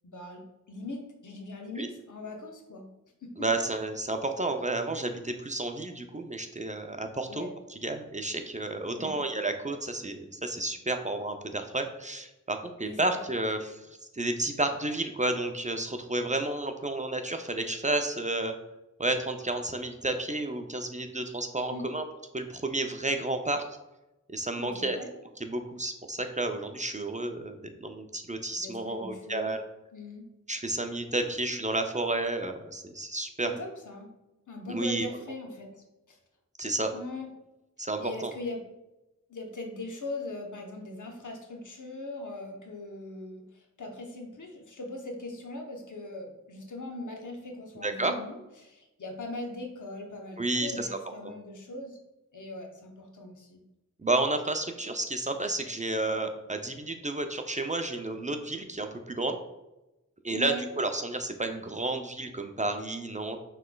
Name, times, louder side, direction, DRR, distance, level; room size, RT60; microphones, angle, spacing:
voice 1, 0.0-2.8 3.2-3.5 7.3-7.5 8.9-9.2 12.8-13.2 21.7-22.0 24.6-25.1 28.5-29.5 29.9-30.3 31.4-31.5 33.4-34.1 34.5-36.2 36.9-37.3 38.0-38.6 39.3-52.0 52.3-53.6 60.3-60.7, left 2 dB, 75° left, 2 dB, 0.8 m, -40 dB
voice 2, 3.4-7.5 7.8-13.8 14.1-18.5 19.0-22.0 22.3-23.6 24.3-25.0 25.4-29.6 30.5-33.5 34.7-35.1 36.6-36.9 37.8-38.3 47.8-48.1 50.4-50.9 54.0-59.4 60.2-63.4, right 2 dB, 25° right, 6 dB, 0.4 m, -31 dB
5.9 x 3.2 x 2.2 m, 0.96 s
wide cardioid pair, 60°, 31 cm